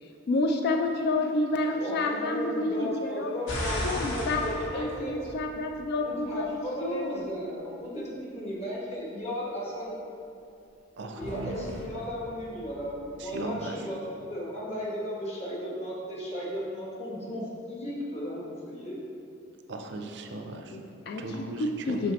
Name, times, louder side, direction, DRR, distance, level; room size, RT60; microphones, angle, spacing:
voice 1, 0.3-3.3 3.8-4.4 4.7-7.2 20.7-22.1, left 2 dB, 50° left, 3 dB, 0.3 m, -29 dB
voice 2, 1.8-5.2 6.0-9.9 11.1-19.0, equal, 30° left, -5 dB, 1.2 m, -35 dB
sound 1, 3.5-5.9 11.2-13.3, left 1 dB, 80° left, 1.1 m, -36 dB
voice 3, 11.0-11.9 13.2-13.9 19.7-20.8 21.2-22.1, right 2 dB, 60° right, 4 dB, 0.5 m, -38 dB
6.1 x 5.7 x 2.9 m, 2.6 s
head